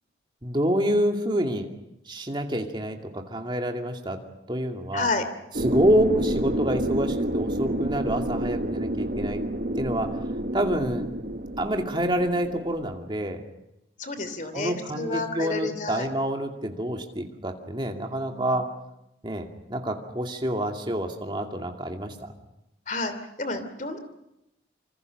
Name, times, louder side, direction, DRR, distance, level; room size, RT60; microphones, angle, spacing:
voice 1, 0.4-1.7 2.1-4.2 4.5-5.1 5.6-9.4 9.8-10.2 10.5-11.1 11.6-13.4 14.5-18.7 19.2-22.3, equal, 25° right, 3 dB, 2.5 m, -27 dB
voice 2, 4.9-5.3 14.0-16.1 18.3-18.6 22.9-24.0, left 3 dB, 45° left, 10 dB, 3.0 m, -30 dB
sound 1, 5.5-12.9, right 1 dB, 50° right, 1.4 m, -29 dB
27.0 x 25.5 x 6.6 m, 0.88 s
head